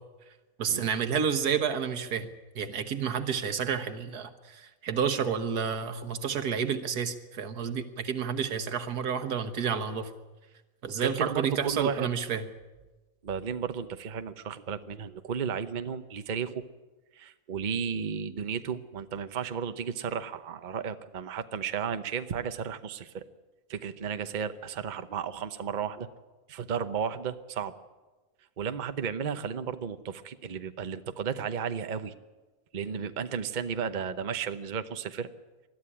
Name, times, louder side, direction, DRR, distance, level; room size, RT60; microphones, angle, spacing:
voice 1, 0.6-10.1 10.8-12.4, right 7 dB, 90° right, 9 dB, 1.8 m, -30 dB
voice 2, 11.0-12.1 13.2-16.6 17.1-23.2 23.7-26.1 26.5-27.7 28.6-32.1 32.7-35.3, right 7 dB, 40° right, 10 dB, 0.8 m, -33 dB
21.0 x 12.5 x 9.9 m, 1.2 s
omnidirectional pair, 1.6 m